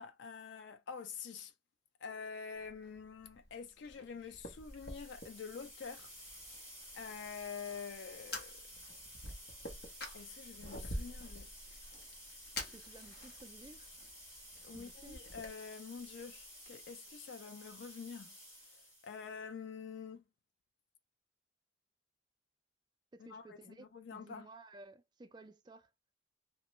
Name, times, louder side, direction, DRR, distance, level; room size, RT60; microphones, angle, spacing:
voice 1, 0.0-1.5 2.0-6.1 6.9-8.6 10.1-11.5 14.6-18.3 18.7-20.2 23.2-24.5, left 6 dB, 70° left, 0.4 m, -47 dB
Fire, 2.5-15.5, left 1 dB, 55° left, 0.8 m, -49 dB
sound 1, 4.4-19.4, equal, 15° left, 1.6 m, -53 dB
voice 2, 12.7-13.9 14.7-15.2 23.1-25.9, right 2 dB, 25° right, 0.3 m, -55 dB
2.9 x 2.1 x 2.9 m
head